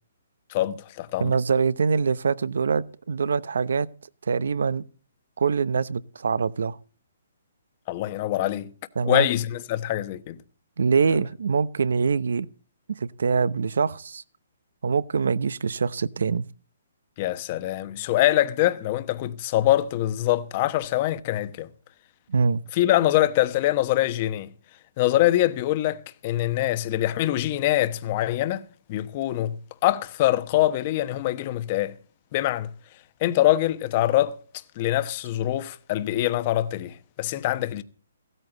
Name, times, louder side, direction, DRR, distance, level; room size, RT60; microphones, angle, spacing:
voice 1, 0.5-1.3 7.9-8.7 9.0-10.4 17.2-21.7 22.7-24.5 25.0-29.6 29.8-31.9 32.3-32.7 33.2-34.3 34.8-37.8, left 14 dB, 30° left, 1.0 m, -24 dB
voice 2, 1.2-3.9 4.3-4.8 5.4-6.8 9.0-9.3 10.8-12.5 13.0-14.2 14.8-16.5 22.3-22.6, right 5 dB, 75° right, 0.9 m, -24 dB
16.0 x 13.5 x 4.0 m
hypercardioid pair, 165°, 0 cm